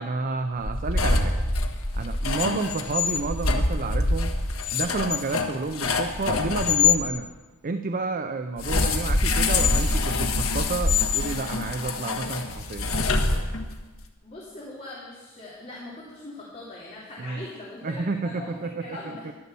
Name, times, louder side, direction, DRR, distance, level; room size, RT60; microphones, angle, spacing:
voice 1, 0.0-1.4 1.9-4.3 4.7-7.3 7.6-12.9 17.2-17.4 17.8-19.1, right 3 dB, 40° right, 8 dB, 0.6 m, -30 dB
sound 1, 0.6-7.0 8.6-13.8, left 3 dB, 70° left, 1.4 m, -25 dB
voice 2, 14.2-19.3, left 2 dB, 30° left, -6 dB, 2.8 m, -41 dB
12.5 x 11.5 x 6.9 m, 1.3 s
head